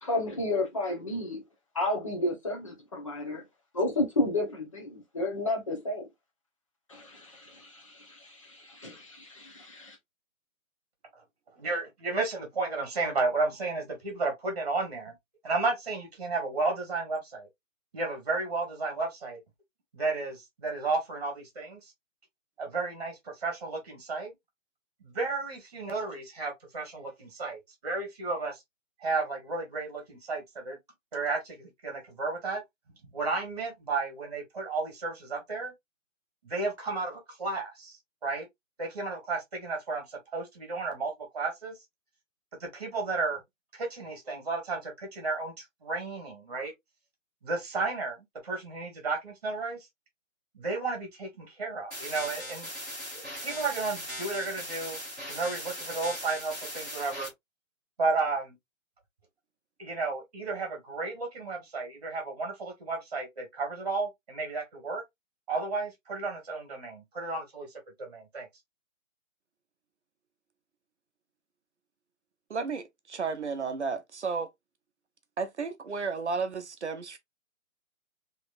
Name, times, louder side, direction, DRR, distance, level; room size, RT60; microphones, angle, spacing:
voice 1, 0.0-1.4 1.7-3.4 3.7-6.1 6.9-10.0, left 2 dB, 25° left, 1.0 m, -32 dB
voice 2, 11.5-15.1 15.4-17.5 17.9-19.4 19.9-21.9 22.6-24.3 25.0-28.6 29.0-30.8 31.1-32.6 33.1-35.7 36.4-38.5 38.8-41.8 42.5-43.4 43.7-46.7 47.4-49.9 50.5-52.7 53.1-55.0 55.3-57.3 58.0-58.6 59.8-65.0 65.5-67.7 68.0-68.5, right 3 dB, 30° right, 1.5 m, -33 dB
sound 1, 51.9-57.3, equal, 5° left, 1.4 m, -39 dB
voice 3, 72.5-72.8 73.1-74.5 75.4-77.2, right 5 dB, 55° right, 0.8 m, -32 dB
3.9 x 3.1 x 2.4 m
hypercardioid pair, 180°, 41 cm